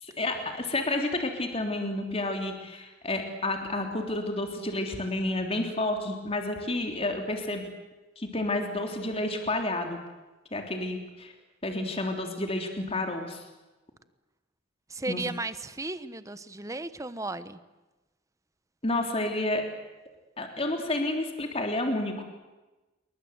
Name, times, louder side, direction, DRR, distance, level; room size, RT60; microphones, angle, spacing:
voice 1, 0.0-7.7 8.2-10.0 10.5-11.3 11.6-13.4 15.1-15.2 18.8-19.7 20.4-22.2, left 2 dB, 30° left, 4 dB, 3.4 m, -30 dB
voice 2, 14.9-17.6, right 2 dB, 15° right, 13 dB, 1.1 m, -35 dB
28.0 x 23.5 x 8.2 m, 1.1 s
head